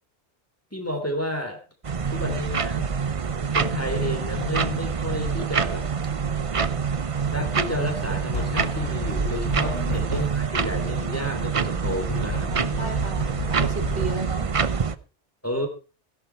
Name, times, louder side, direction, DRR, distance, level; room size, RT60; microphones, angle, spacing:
voice 1, 0.7-1.6 2.1-2.9 3.5-5.9 7.3-13.0 15.4-15.7, left 1 dB, 10° left, 4 dB, 2.8 m, -31 dB
sound 1, 1.8-15.0, right 6 dB, 35° right, 0.7 m, -26 dB
sound 2, 8.3-10.6 11.8-14.5, left 2 dB, 90° left, 2.6 m, -33 dB
voice 2, 9.6-10.0 12.5-14.5, right 3 dB, 65° right, 5 dB, 2.8 m, -34 dB
16.5 x 11.0 x 4.5 m, 0.33 s
omnidirectional pair, 1.2 m